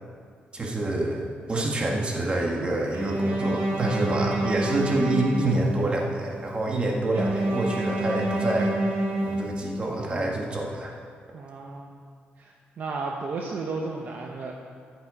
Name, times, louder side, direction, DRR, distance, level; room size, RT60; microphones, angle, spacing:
voice 1, 0.5-10.9, right 2 dB, 30° right, -1 dB, 1.8 m, -27 dB
Bowed string instrument, 2.9-6.1 7.1-10.1, right 1 dB, 85° right, 1.7 m, -28 dB
voice 2, 4.2-4.8 11.3-12.0 12.4-14.5, right 3 dB, 50° right, 0 dB, 0.9 m, -34 dB
13.5 x 8.0 x 5.0 m, 2.1 s
cardioid pair, 140°, 4 cm